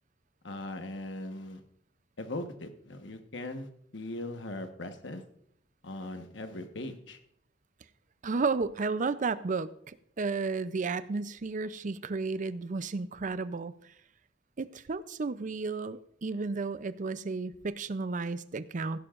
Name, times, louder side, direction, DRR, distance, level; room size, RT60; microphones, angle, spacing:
voice 1, 0.4-1.6 2.2-5.2 5.8-7.2, left 1 dB, 70° left, 7 dB, 1.2 m, -39 dB
voice 2, 8.2-13.7 14.6-19.0, right 4 dB, 45° right, 14 dB, 0.5 m, -33 dB
16.0 x 11.5 x 2.5 m, 0.69 s
head